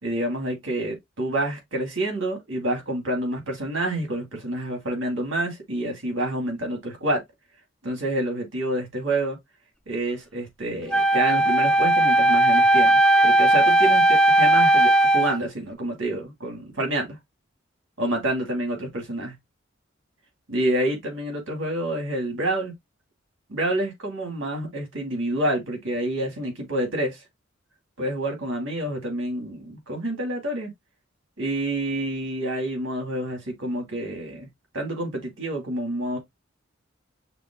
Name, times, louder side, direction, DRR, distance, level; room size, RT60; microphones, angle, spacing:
voice 1, 0.0-7.2 7.8-9.4 9.9-17.2 18.0-19.3 20.5-22.7 23.5-27.2 28.0-30.7 31.4-34.5 34.7-36.2, right 1 dB, 80° right, 2.5 m, -28 dB
Wind instrument woodwind instrument, 10.9-15.4, right 1 dB, 5° left, 0.4 m, -17 dB
5.9 x 2.1 x 3.8 m
head